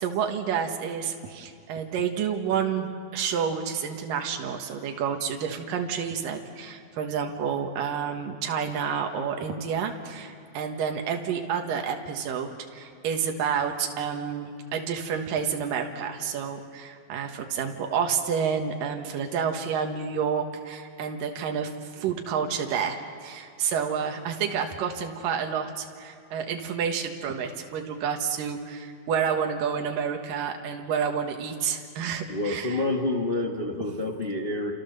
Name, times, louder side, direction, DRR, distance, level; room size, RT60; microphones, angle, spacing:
voice 1, 0.0-32.8, right 7 dB, 80° right, 3 dB, 3.1 m, -29 dB
voice 2, 32.3-34.7, left 2 dB, 45° left, 0 dB, 0.7 m, -28 dB
29.5 x 27.5 x 6.8 m, 2.3 s
omnidirectional pair, 3.9 m